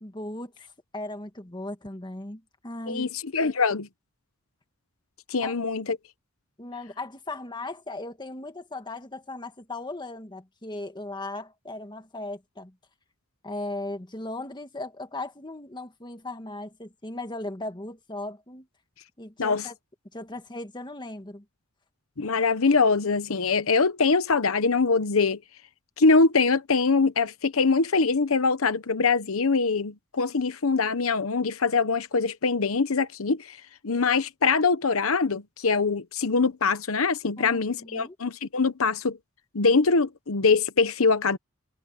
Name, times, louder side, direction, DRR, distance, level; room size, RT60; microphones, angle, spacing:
voice 1, 0.0-0.5 0.9-3.1 5.4-5.5 6.6-12.7 13.4-18.7 19.2-19.7 20.1-21.4 37.4-38.1, left 2 dB, 20° left, 1.7 m, -37 dB
voice 2, 2.9-3.9 5.3-6.0 19.4-19.6 22.2-25.4 26.0-33.6 33.8-39.2 39.5-41.4, left 4 dB, 85° left, 1.0 m, -23 dB
head